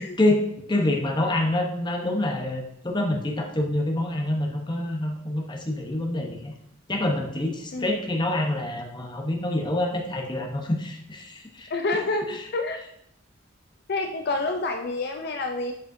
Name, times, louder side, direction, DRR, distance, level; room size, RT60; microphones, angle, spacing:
voice 1, 0.0-6.5 6.9-11.7 12.3-12.4, left 1 dB, 25° left, 1 dB, 0.9 m, -26 dB
voice 2, 11.7-12.8 13.9-15.7, left 2 dB, 55° left, 4 dB, 0.5 m, -28 dB
7.5 x 5.0 x 2.6 m, 0.73 s
head